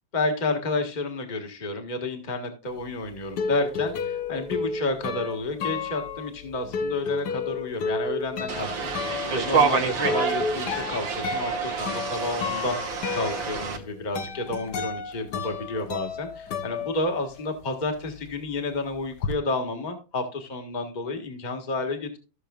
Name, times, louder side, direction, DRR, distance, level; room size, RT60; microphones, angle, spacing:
voice 1, 0.1-12.8 13.1-22.2, left 2 dB, 25° left, 4 dB, 1.5 m, -30 dB
sound 1, 2.8-17.6 17.9-19.3, left 4 dB, 65° left, 1.5 m, -32 dB
sound 2, 8.5-13.8, right 6 dB, 80° right, 2.0 m, -27 dB
15.0 x 6.7 x 2.3 m, 0.32 s
omnidirectional pair, 2.0 m